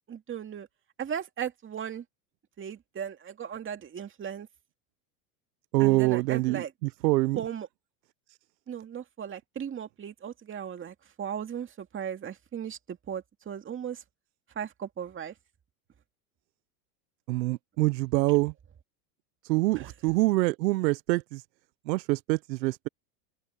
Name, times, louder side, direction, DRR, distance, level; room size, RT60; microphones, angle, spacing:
voice 1, 0.1-0.7 1.0-2.0 2.6-4.5 5.8-6.7 7.4-7.7 8.7-14.0 14.6-15.3 19.7-19.9, right 8 dB, 25° right, 2.3 m, -37 dB
voice 2, 5.7-6.6 7.0-7.4 17.3-18.5 19.5-21.4 21.9-22.9, right 21 dB, 80° right, 0.8 m, -25 dB
supercardioid pair, 120°, 49 cm